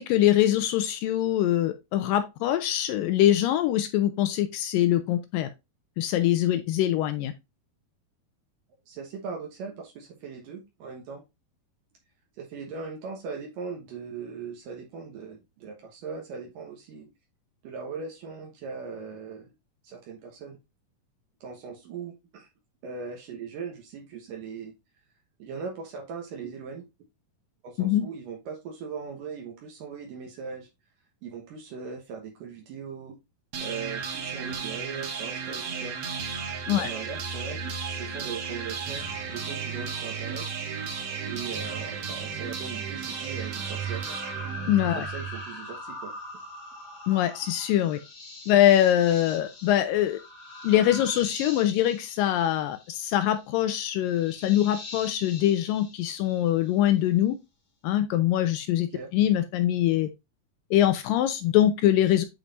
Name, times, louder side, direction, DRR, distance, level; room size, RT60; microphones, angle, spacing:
voice 1, 0.0-5.5 6.0-7.3 27.8-28.1 36.7-36.9 44.7-45.1 47.1-48.0 48.5-50.2 50.6-57.4 57.8-60.1 60.7-62.2, left 12 dB, 80° left, 2.3 m, -23 dB
voice 2, 8.9-11.2 12.4-17.1 17.6-19.5 19.8-20.6 21.4-22.5 22.8-24.7 25.4-26.8 27.6-30.7 31.2-33.2 33.6-36.0 36.7-40.5 41.3-44.2 45.0-46.1 58.9-59.1, right 5 dB, 75° right, 2.8 m, -39 dB
sound 1, 33.5-45.5, right 6 dB, 55° right, 2.0 m, -34 dB
sound 2, 43.0-56.8, left 2 dB, 40° left, 3.0 m, -43 dB
9.0 x 4.7 x 2.5 m
omnidirectional pair, 4.1 m